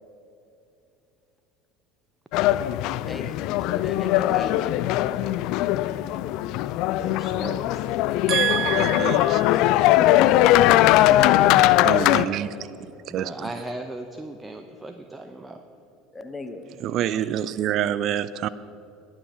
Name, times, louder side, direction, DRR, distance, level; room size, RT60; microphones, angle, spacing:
sound 1, 2.3-12.2, left 14 dB, 55° left, 0.3 m, -20 dB
voice 1, 3.1-4.8 16.1-16.7, left 3 dB, 20° left, 1.1 m, -37 dB
voice 2, 7.0-7.8 9.2-9.6 9.9-10.8 11.2-11.3 12.0-12.6 13.1-15.6 17.0-17.6, right 2 dB, 15° right, 0.7 m, -38 dB
voice 3, 8.3-9.5 11.8-12.5 13.1-13.3 16.8-18.5, right 11 dB, 45° right, 0.4 m, -26 dB
21.0 x 7.6 x 4.7 m
figure-of-eight pair, 65°, 0 cm